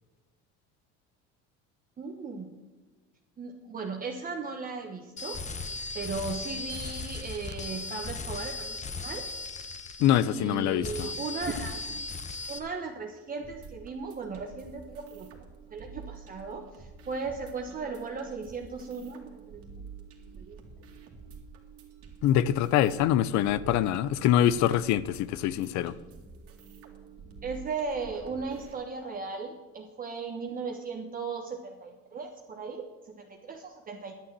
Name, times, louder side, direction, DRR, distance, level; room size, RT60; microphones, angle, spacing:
voice 1, 2.0-2.5 3.4-9.2 10.2-12.0 12.5-15.3 15.7-19.6 20.4-20.6 27.4-34.1, right 4 dB, 30° right, 1.1 m, -37 dB
sound 1, 5.2-10.5 10.8-12.6, left 3 dB, 25° left, 1.0 m, -37 dB
voice 2, 10.0-11.1 22.2-25.9, left 11 dB, 70° left, 0.6 m, -24 dB
sound 2, 13.4-28.7, right 5 dB, 50° right, 2.2 m, -48 dB
11.0 x 7.1 x 7.4 m
cardioid pair, 120°, 29 cm